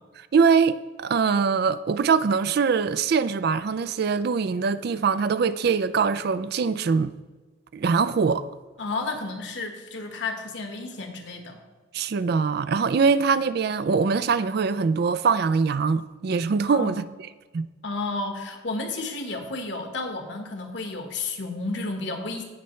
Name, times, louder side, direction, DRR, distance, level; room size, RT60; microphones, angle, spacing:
voice 1, 0.3-7.1 7.7-8.5 11.9-17.0 17.5-17.7, right 5 dB, 55° right, 0.4 m, -23 dB
voice 2, 8.8-11.6 16.7-17.0 17.8-22.4, left 3 dB, 65° left, 1.4 m, -32 dB
17.0 x 5.7 x 3.2 m
head